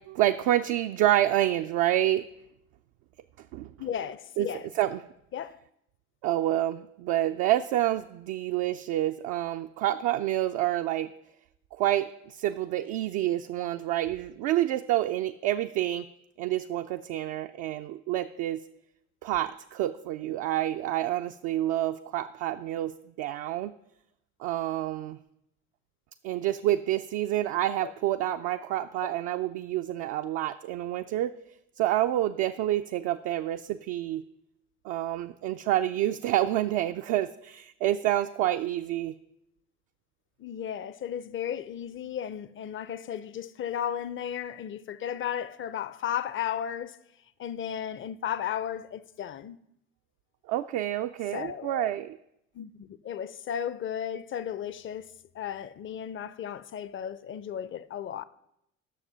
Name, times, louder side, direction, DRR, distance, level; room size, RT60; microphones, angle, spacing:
voice 1, 0.1-2.2 3.5-3.7 4.4-4.5 4.8-5.0 6.2-11.1 11.7-16.0 16.4-18.6 19.2-23.7 24.4-25.2 26.2-31.4 31.8-34.2 34.8-39.2 50.5-52.2, right 13 dB, 55° right, 0.5 m, -28 dB
voice 2, 3.8-4.7 5.3-5.6 27.8-27.9 40.4-47.0 47.4-49.6 51.3-51.9 52.5-58.2, left 9 dB, 30° left, 0.5 m, -34 dB
10.0 x 6.5 x 5.7 m
figure-of-eight pair, 55°, 39 cm